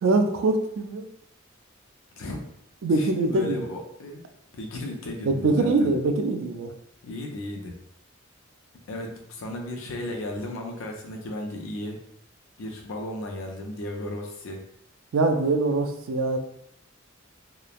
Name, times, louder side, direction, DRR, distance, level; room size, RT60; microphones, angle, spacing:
voice 1, 0.0-1.1 2.8-3.6 5.2-6.7 15.1-16.4, right 2 dB, 75° right, 6 dB, 0.4 m, -23 dB
voice 2, 3.0-4.2 4.5-5.9 7.0-7.8 8.9-12.0 12.6-14.6, left 1 dB, 75° left, 2 dB, 0.5 m, -35 dB
3.0 x 2.0 x 2.3 m, 0.73 s
head